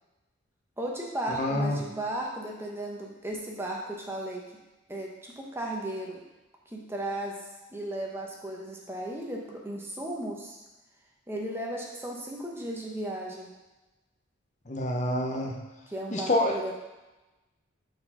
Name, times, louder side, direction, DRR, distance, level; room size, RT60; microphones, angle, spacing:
voice 1, 0.8-4.4 4.9-6.2 6.7-7.4 7.7-10.6 11.3-13.5 15.9-16.7, right 1 dB, 10° right, -1 dB, 0.9 m, -35 dB
voice 2, 1.4-1.8 14.7-15.6 16.1-16.5, left 1 dB, 35° left, -1 dB, 0.7 m, -27 dB
6.6 x 4.4 x 5.6 m, 1.1 s
head